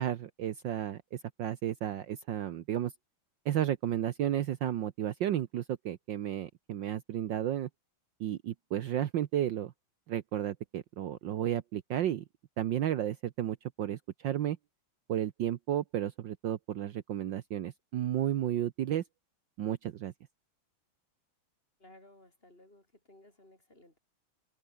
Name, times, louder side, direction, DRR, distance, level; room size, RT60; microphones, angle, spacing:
voice 1, 0.0-2.9 3.4-7.7 8.2-9.7 10.1-12.2 12.6-14.6 15.1-19.0 19.6-20.1, right 11 dB, 65° right, 1.5 m, -33 dB
voice 2, 21.8-24.0, left 1 dB, 25° left, 6.0 m, -58 dB
omnidirectional pair, 2.3 m